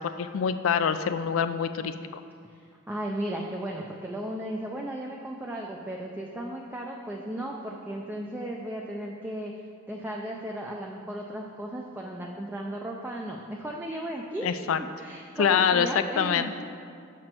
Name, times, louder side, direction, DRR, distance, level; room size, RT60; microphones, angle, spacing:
voice 1, 0.0-2.2 14.4-14.8 15.4-15.9 16.2-16.5, left 7 dB, 75° left, 11 dB, 0.4 m, -25 dB
voice 2, 2.5-9.5 9.9-16.6, right 1 dB, 10° right, -1 dB, 0.3 m, -35 dB
6.3 x 6.0 x 4.4 m, 2.3 s
head